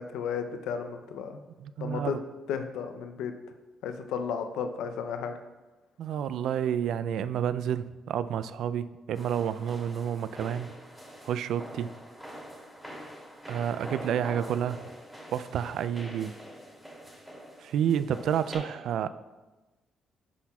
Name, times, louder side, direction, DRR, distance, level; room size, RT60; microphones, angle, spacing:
voice 1, 0.0-1.4 1.8-2.2 2.5-3.3 3.8-5.3, left 7 dB, 90° left, 7 dB, 0.5 m, -33 dB
voice 2, 1.6-2.2 6.0-10.7 11.2-11.9 13.5-14.8 15.3-16.3 17.6-19.1, right 9 dB, 75° right, 14 dB, 0.3 m, -30 dB
sound 1, 9.1-18.6, equal, 10° right, 2.7 m, -45 dB
13.5 x 5.7 x 2.3 m, 1.2 s
cardioid pair, 90°, 0 cm